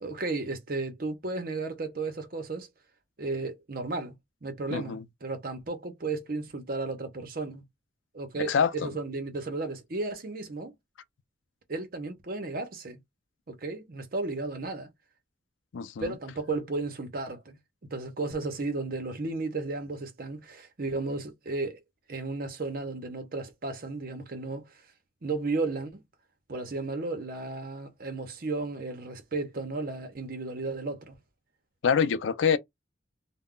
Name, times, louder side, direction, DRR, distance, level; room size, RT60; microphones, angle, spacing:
voice 1, 0.0-2.7 3.2-4.1 4.4-7.6 8.1-10.7 11.7-13.0 13.5-14.9 16.0-21.8 22.1-24.7 25.2-26.0 26.5-31.1, right 3 dB, 50° right, 0.7 m, -34 dB
voice 2, 4.7-5.0 8.5-8.9 15.7-16.1 31.8-32.6, left 6 dB, 80° left, 0.4 m, -25 dB
2.3 x 2.1 x 3.6 m
head